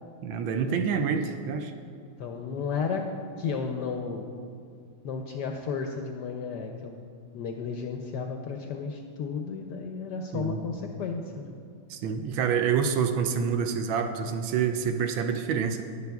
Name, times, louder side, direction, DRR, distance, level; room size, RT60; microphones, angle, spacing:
voice 1, 0.2-1.7 10.3-10.6 11.9-15.8, right 6 dB, 75° right, 6 dB, 1.3 m, -27 dB
voice 2, 2.2-3.1 3.4-4.3 5.0-7.0 7.3-11.5, left 5 dB, 75° left, 3 dB, 1.0 m, -33 dB
19.0 x 6.8 x 2.3 m, 2.4 s
omnidirectional pair, 2.3 m